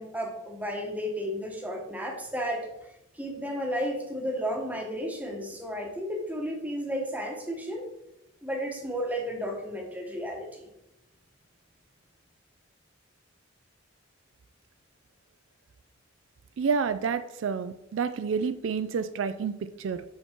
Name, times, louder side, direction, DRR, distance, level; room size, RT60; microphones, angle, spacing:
voice 1, 0.0-2.9 3.1-7.9 8.4-10.7, equal, 5° right, 2 dB, 1.0 m, -33 dB
voice 2, 16.6-20.0, right 6 dB, 70° right, 12 dB, 0.3 m, -29 dB
5.8 x 5.6 x 4.4 m, 0.89 s
head